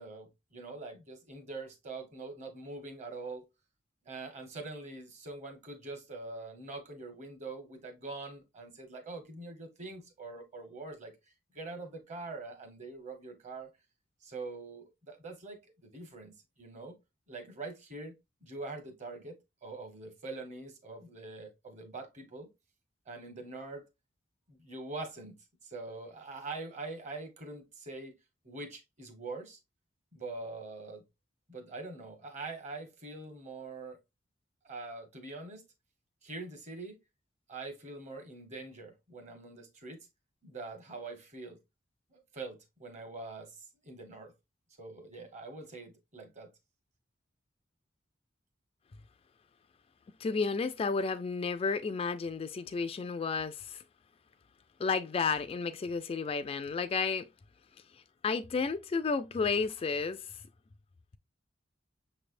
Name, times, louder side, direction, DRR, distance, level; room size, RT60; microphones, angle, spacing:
voice 1, 0.0-3.5 4.0-11.1 11.5-13.7 14.2-16.3 16.6-17.0 17.3-18.2 18.4-22.5 23.1-23.9 24.5-25.4 25.6-28.2 28.4-29.6 30.1-31.0 31.5-34.0 34.6-35.6 36.2-37.0 37.5-40.1 40.4-41.6 42.1-44.3 44.8-46.5, right 3 dB, 40° right, 1.1 m, -44 dB
voice 2, 50.2-53.8 54.8-57.3 58.2-60.3, left 4 dB, 30° left, 0.3 m, -32 dB
6.3 x 3.3 x 2.4 m
head